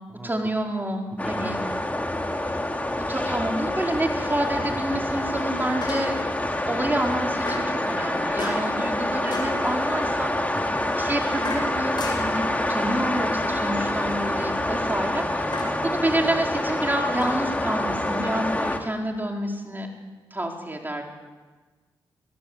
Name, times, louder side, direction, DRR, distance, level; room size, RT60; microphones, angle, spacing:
voice 1, 0.2-1.6 3.1-6.1 6.7-10.6 11.0-19.9 20.3-21.0, right 1 dB, 20° right, 1 dB, 4.7 m, -28 dB
sound 1, 1.2-18.8, left 1 dB, 15° left, 2.9 m, -27 dB
voice 2, 1.2-2.2 10.5-10.8, right 1 dB, 5° right, -1 dB, 3.1 m, -39 dB
sound 2, 2.1-2.2 5.8-6.4 7.5-7.8 8.4-8.8 9.3-9.6 10.8-12.4 13.9-14.3 15.5-15.8 17.2-18.2, left 3 dB, 50° left, 5.7 m, -36 dB
Wind instrument woodwind instrument, 7.1-15.6, right 4 dB, 50° right, 2.3 m, -43 dB
21.0 x 17.0 x 8.4 m, 1.3 s
cardioid pair, 50°, 10 cm